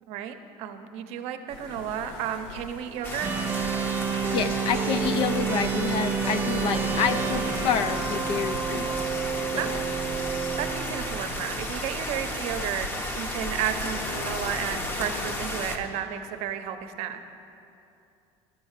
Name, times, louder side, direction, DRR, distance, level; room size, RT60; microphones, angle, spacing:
voice 1, 0.1-3.3 9.6-9.7 10.6-12.9 13.1-17.2, right 9 dB, 60° right, 8 dB, 0.7 m, -32 dB
sound 1, 1.5-15.9, left 4 dB, 80° left, 0.7 m, -41 dB
sound 2, 3.0-15.8, left 1 dB, 20° left, 0.8 m, -34 dB
sound 3, 3.2-12.5, right 7 dB, 20° right, 0.4 m, -30 dB
voice 2, 4.1-9.0 9.5-9.8, left 7 dB, 45° left, 12 dB, 0.4 m, -28 dB
12.5 x 5.5 x 7.3 m, 2.7 s
cardioid pair, 155°, 12 cm